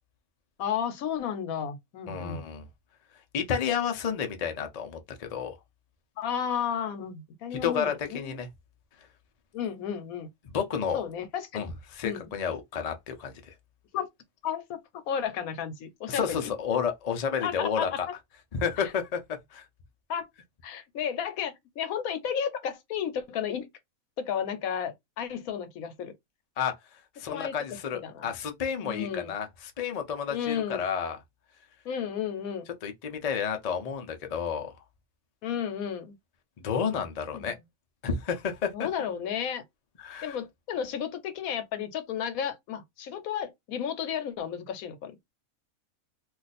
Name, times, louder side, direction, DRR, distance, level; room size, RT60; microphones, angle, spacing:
voice 1, 0.6-2.4 6.2-8.4 9.5-10.3 10.9-11.6 12.0-12.3 13.9-14.1 14.4-14.8 15.1-16.5 17.4-17.9 18.8-18.9 20.1-20.3 20.6-23.7 24.2-26.1 27.2-27.5 28.0-28.3 28.8-29.3 30.3-30.8 31.8-32.6 35.4-36.1 37.3-37.6 38.7-39.6 40.2-45.1, left 8 dB, 80° left, 1.1 m, -33 dB
voice 2, 2.1-2.7 3.3-5.6 7.5-8.5 10.5-11.0 11.5-13.5 16.1-18.1 18.5-19.2 19.5-19.6 26.6-26.7 27.2-31.2 32.8-34.7 36.6-37.5 38.0-38.9 40.0-40.4, left 7 dB, 50° left, 0.4 m, -31 dB
2.4 x 2.4 x 4.0 m
omnidirectional pair, 1.5 m